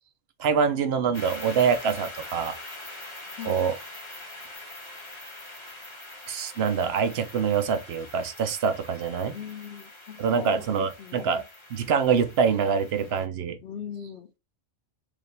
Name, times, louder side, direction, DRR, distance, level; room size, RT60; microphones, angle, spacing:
voice 1, 0.4-2.6 3.4-3.7 6.3-9.3 10.2-11.4 11.7-13.6, right 6 dB, 60° right, 0.8 m, -25 dB
sound 1, 1.1-13.2, left 2 dB, 25° left, 1.0 m, -43 dB
voice 2, 9.3-11.4 13.6-14.3, left 8 dB, 55° left, 1.3 m, -40 dB
4.9 x 2.5 x 3.3 m
omnidirectional pair, 1.3 m